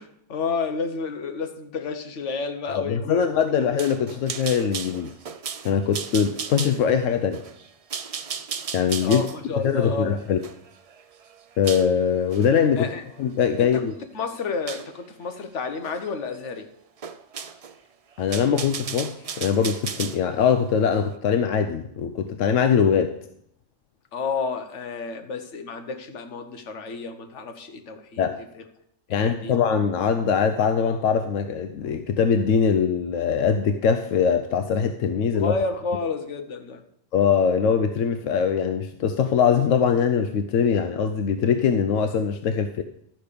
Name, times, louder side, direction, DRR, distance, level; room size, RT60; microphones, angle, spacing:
voice 1, 0.0-3.6 9.0-10.2 12.8-13.0 13.6-13.8 14.1-16.7 24.1-28.3 29.1-29.5 35.3-36.8, left 4 dB, 70° left, 6 dB, 1.3 m, -30 dB
voice 2, 2.7-5.1 5.6-7.4 8.7-9.2 9.6-10.4 11.6-12.9 13.2-13.9 18.2-23.2 28.2-28.4 29.1-35.5 37.1-42.8, left 7 dB, 90° left, 8 dB, 1.0 m, -22 dB
sound 1, 3.8-11.9 12.3-12.6 13.1-13.8 14.7-14.9 15.8-16.1 16.3-16.4 17.0-17.8 18.1-20.2, right 6 dB, 50° right, 0.4 m, -35 dB
12.5 x 5.2 x 6.7 m, 0.75 s
omnidirectional pair, 1.3 m